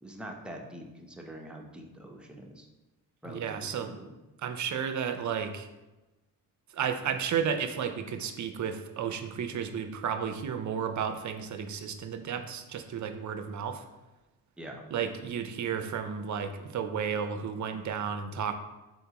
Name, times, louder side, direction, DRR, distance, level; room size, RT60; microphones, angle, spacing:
voice 1, 0.0-2.7 3.2-4.1 14.6-14.8, right 1 dB, ahead, 1 dB, 0.6 m, -44 dB
voice 2, 3.2-4.0 4.4-5.7 6.7-13.8 14.9-18.5, right 7 dB, 45° right, 8 dB, 0.5 m, -33 dB
4.1 x 3.5 x 2.9 m, 1.1 s
cardioid pair, 65°, 42 cm